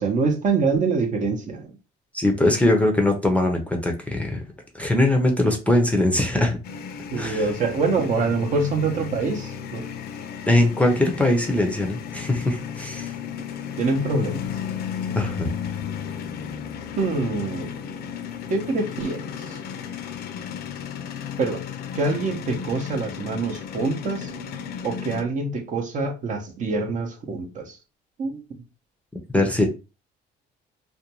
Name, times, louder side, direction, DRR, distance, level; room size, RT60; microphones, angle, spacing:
voice 1, 0.0-1.7 7.1-9.9 13.8-14.5 17.0-17.8 18.5-19.6 21.4-21.6 21.9-24.3 24.8-27.8 28.2-28.4, right 4 dB, 50° right, 0.7 m, -25 dB
voice 2, 2.1-4.4 4.8-6.6 7.1-7.5 10.5-13.1 15.1-15.5 29.3-29.7, left 1 dB, 10° left, 0.5 m, -21 dB
sound 1, 6.6-25.2, left 8 dB, 70° left, 0.5 m, -34 dB
2.5 x 2.2 x 2.9 m
cardioid pair, 110°, 17 cm